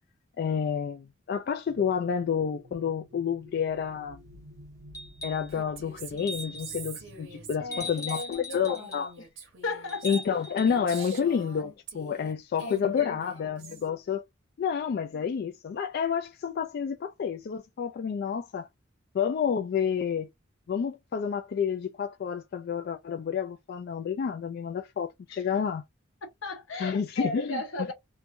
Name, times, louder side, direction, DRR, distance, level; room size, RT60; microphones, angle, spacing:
voice 1, 0.4-4.2 5.2-9.1 10.0-14.2 14.6-18.7 19.1-20.3 20.7-25.8 26.8-27.6, left 7 dB, 50° left, 0.3 m, -29 dB
sound 1, 1.7-7.9, equal, 55° right, 0.6 m, -51 dB
sound 2, 4.9-5.5 6.2-6.8 7.7-9.1 9.9-11.1 12.7-12.8, left 1 dB, 20° left, 0.6 m, -40 dB
Female speech woman speaking, 5.5-12.3 12.6-13.9, right 5 dB, 70° right, 0.9 m, -46 dB
voice 2, 7.6-8.9 9.6-10.2 11.0-11.5 12.6-13.8 25.3-25.4 26.4-27.9, left 2 dB, 85° left, 1.1 m, -36 dB
3.1 x 2.2 x 2.5 m
head